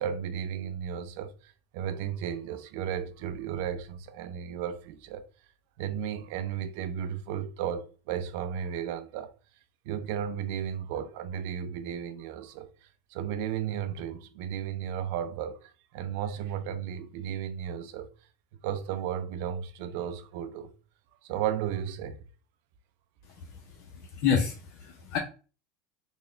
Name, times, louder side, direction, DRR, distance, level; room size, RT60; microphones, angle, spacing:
voice 1, 0.0-5.3 5.8-9.3 9.9-18.1 18.6-20.7 21.2-22.2, right 9 dB, 70° right, 0.4 m, -34 dB
voice 2, 23.4-25.2, left 7 dB, 65° left, 0.7 m, -30 dB
3.7 x 2.3 x 3.2 m
supercardioid pair, 105°, 0 cm